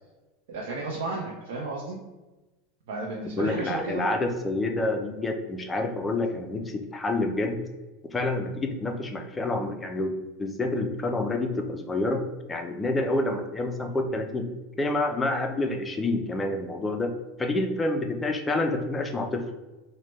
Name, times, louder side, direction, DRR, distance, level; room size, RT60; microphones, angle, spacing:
voice 1, 0.5-2.0 2.9-4.1, right 3 dB, 90° right, -2 dB, 0.5 m, -33 dB
voice 2, 3.4-7.6 8.0-10.1 10.4-14.5 14.8-17.1 17.4-19.4, left 2 dB, 10° left, 4 dB, 0.3 m, -28 dB
3.2 x 2.1 x 3.0 m, 1.1 s
supercardioid pair, 155°, 0 cm